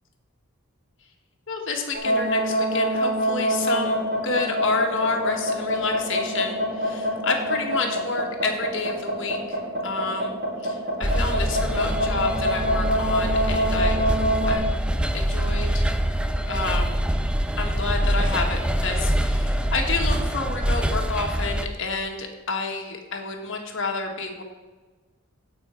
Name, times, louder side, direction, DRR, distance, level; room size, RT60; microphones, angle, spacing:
voice 1, 1.5-10.3 10.6-14.1 14.5-14.7 15.1-15.8 16.5-16.9 17.6-24.4, left 4 dB, 60° left, 2 dB, 1.7 m, -29 dB
sound 1, 1.9-14.5, equal, 45° right, 3.8 m, -24 dB
sound 2, 11.0-21.7, equal, 5° right, 0.4 m, -24 dB
16.0 x 5.6 x 4.5 m, 1.3 s
head